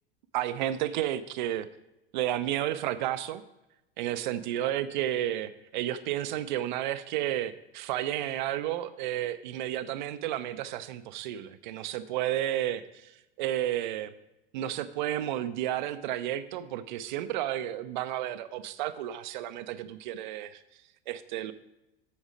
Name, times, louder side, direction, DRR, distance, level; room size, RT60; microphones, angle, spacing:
voice 1, 0.3-1.7 2.1-3.4 4.0-13.1 13.4-14.1 14.5-20.6 21.1-21.5, right 12 dB, 50° right, 14 dB, 0.6 m, -32 dB
8.5 x 7.1 x 5.1 m, 0.93 s
figure-of-eight pair, 85°, 30 cm